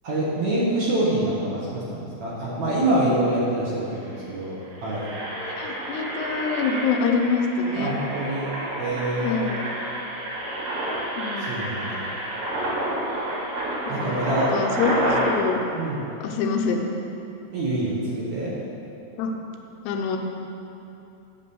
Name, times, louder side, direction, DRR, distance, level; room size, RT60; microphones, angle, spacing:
voice 1, 0.0-5.0 7.8-9.5 11.5-12.1 13.9-14.5 15.7-16.0 17.5-18.5, right 1 dB, 60° right, -7 dB, 2.1 m, -26 dB
Engine, 3.9-4.2 4.6-15.3, right 1 dB, 90° right, 4.5 m, -29 dB
voice 2, 5.5-8.0 9.2-9.6 11.2-11.5 13.9-14.9 15.2-15.6 16.2-16.8 19.2-19.3 19.8-20.2, left 5 dB, 80° left, 3 dB, 2.8 m, -25 dB
8.4 x 6.4 x 7.1 m, 2.8 s
omnidirectional pair, 4.9 m